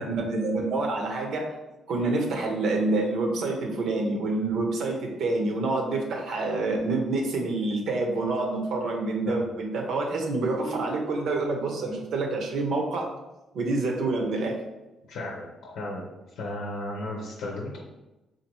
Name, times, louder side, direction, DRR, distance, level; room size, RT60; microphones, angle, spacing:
voice 1, 0.0-1.5 1.9-13.1 13.5-14.6, right 2 dB, 75° right, 1 dB, 0.8 m, -27 dB
voice 2, 15.1-17.8, left 1 dB, 85° left, -2 dB, 0.7 m, -35 dB
4.1 x 2.5 x 3.0 m, 1.0 s
cardioid pair, 90°, 0 cm